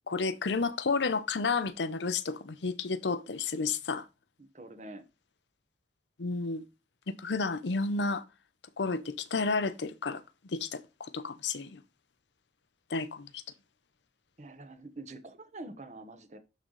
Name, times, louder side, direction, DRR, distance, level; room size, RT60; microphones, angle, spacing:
voice 1, 0.1-4.1 6.2-6.6 7.1-8.2 8.8-10.2 10.5-11.8 12.9-13.4, left 4 dB, 85° left, 0.7 m, -31 dB
voice 2, 4.4-5.0 14.4-16.4, right 2 dB, 40° right, 1.1 m, -46 dB
11.5 x 3.9 x 3.2 m
head